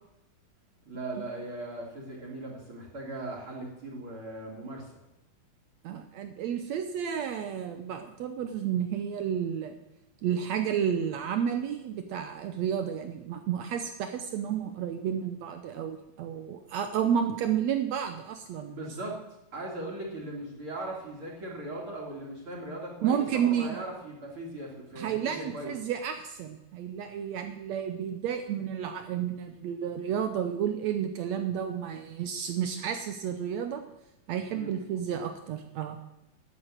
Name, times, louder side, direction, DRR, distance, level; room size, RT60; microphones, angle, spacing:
voice 1, 0.8-4.8 18.7-19.2 19.5-25.7 34.5-34.7, right 1 dB, 35° right, -2 dB, 3.3 m, -39 dB
voice 2, 5.8-9.8 10.2-18.9 23.0-23.8 25.0-33.8 34.3-36.0, right 8 dB, 85° right, 7 dB, 1.5 m, -31 dB
12.5 x 8.0 x 9.0 m, 0.90 s
omnidirectional pair, 4.3 m